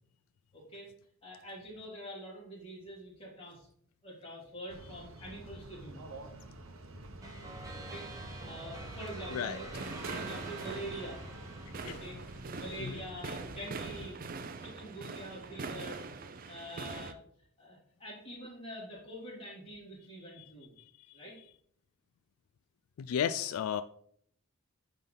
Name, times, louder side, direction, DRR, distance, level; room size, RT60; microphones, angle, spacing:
voice 1, 0.5-0.9 1.2-3.7 4.0-6.2 7.7-11.2 11.8-12.2 12.5-14.2 14.6-17.2 17.6-20.7 21.1-21.3, right 1 dB, 25° left, -6 dB, 3.0 m, -45 dB
sound 1, 4.7-14.1, right 1 dB, 70° right, 0.8 m, -48 dB
sound 2, 7.2-12.7, right 2 dB, 15° right, 1.2 m, -47 dB
sound 3, 9.7-17.1, right 4 dB, 40° right, 0.5 m, -43 dB
voice 2, 23.0-23.8, left 8 dB, 80° left, 13 dB, 0.3 m, -33 dB
9.6 x 3.6 x 3.9 m, 0.65 s
head